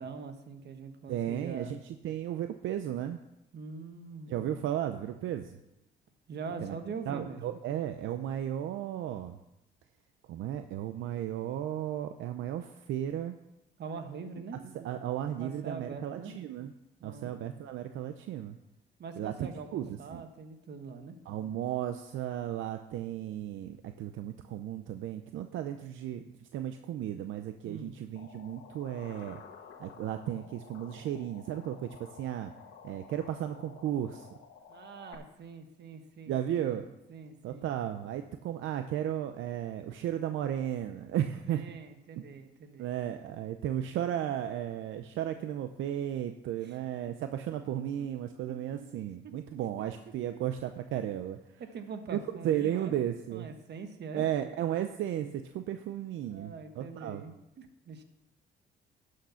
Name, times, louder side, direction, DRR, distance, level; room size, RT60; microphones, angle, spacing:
voice 1, 0.0-1.8 3.5-4.6 6.3-7.4 13.8-14.6 15.4-16.3 17.0-17.3 19.0-21.1 27.6-27.9 34.7-36.8 37.1-37.7 41.5-42.9 46.6-46.8 48.0-48.1 48.5-48.8 51.6-53.0 53.3-54.3 56.2-58.0, right 5 dB, 60° right, 7 dB, 1.4 m, -43 dB
voice 2, 1.1-3.2 4.3-5.6 6.6-6.7 7.1-9.4 10.3-13.4 14.7-16.7 17.0-18.6 19.2-20.2 21.3-29.4 29.8-32.5 32.8-34.3 36.3-36.9 37.4-41.6 42.2-42.3 42.8-51.6 52.1-53.5 54.1-57.2, right 11 dB, 80° right, 8 dB, 0.6 m, -34 dB
sound 1, 28.2-35.2, left 6 dB, 90° left, 1.4 m, -52 dB
11.5 x 6.7 x 5.7 m, 0.87 s
cardioid pair, 90°, 20 cm